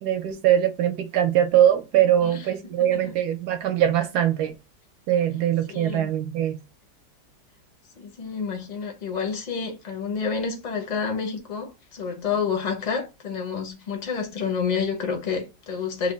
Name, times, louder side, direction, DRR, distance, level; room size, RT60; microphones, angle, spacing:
voice 1, 0.0-4.5 5.1-6.6, right 11 dB, 75° right, 1.1 m, -22 dB
voice 2, 5.7-6.1 8.0-16.1, left 6 dB, 45° left, 0.5 m, -29 dB
3.3 x 2.2 x 3.9 m
omnidirectional pair, 1.8 m